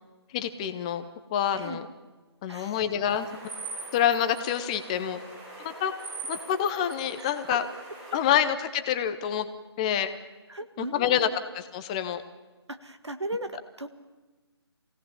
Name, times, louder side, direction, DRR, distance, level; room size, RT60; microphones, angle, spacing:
voice 1, 0.3-1.0 1.3-1.9 2.4-3.3 3.9-5.2 5.6-5.9 6.3-7.7 8.1-9.5 9.8-10.1 10.8-11.3 11.5-12.2, left 9 dB, 15° left, 10 dB, 0.7 m, -27 dB
voice 2, 2.5-2.8 7.2-7.6 10.5-11.3 12.7-13.9, right 1 dB, 80° right, 9 dB, 1.8 m, -37 dB
sound 1, 3.1-8.2, right 3 dB, 15° right, 7.5 m, -42 dB
24.0 x 17.0 x 7.2 m, 1.2 s
figure-of-eight pair, 150°, 14 cm